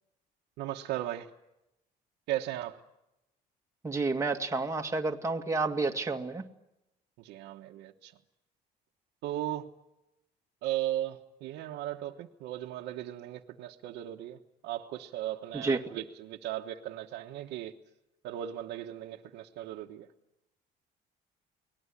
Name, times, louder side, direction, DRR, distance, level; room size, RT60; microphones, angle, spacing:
voice 1, 0.6-1.3 2.3-2.8 7.2-8.1 9.2-9.7 10.6-17.7 18.2-20.1, right 13 dB, 90° right, 1.4 m, -37 dB
voice 2, 3.8-6.4 15.6-15.8, right 3 dB, 15° right, 2.1 m, -30 dB
29.0 x 20.0 x 9.9 m
cardioid pair, 110°, 17 cm